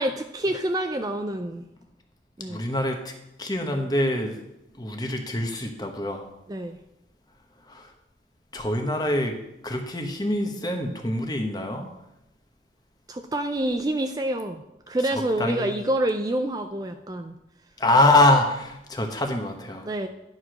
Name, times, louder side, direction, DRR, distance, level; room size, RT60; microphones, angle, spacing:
voice 1, 0.0-1.6 2.4-2.6 6.5-6.8 13.1-17.4 19.8-20.1, right 1 dB, 20° right, 6 dB, 0.4 m, -27 dB
voice 2, 2.5-3.1 3.4-4.4 4.8-6.2 7.7-7.9 8.5-9.4 9.6-11.9 15.0-15.8 17.8-19.9, left 1 dB, 20° left, 4 dB, 1.1 m, -24 dB
11.0 x 4.8 x 6.2 m, 0.87 s
head